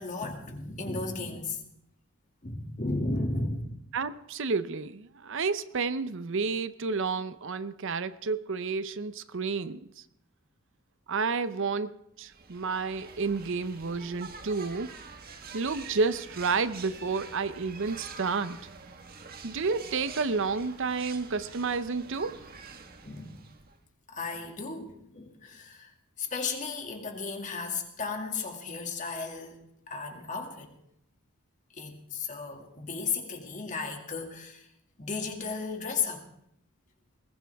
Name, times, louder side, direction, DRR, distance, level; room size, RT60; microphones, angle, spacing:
voice 1, 0.0-1.6 2.4-3.6 23.0-23.4 24.1-25.9 26.2-30.7 31.7-34.7 35.0-36.2, left 4 dB, 35° left, 2.4 m, -34 dB
voice 2, 3.9-9.8 11.1-11.9 12.2-14.9 15.5-18.6 19.4-22.4, right 4 dB, 60° right, 0.7 m, -30 dB
sound 1, 12.2-23.8, right 5 dB, 45° right, 1.5 m, -46 dB
21.0 x 19.5 x 3.5 m
head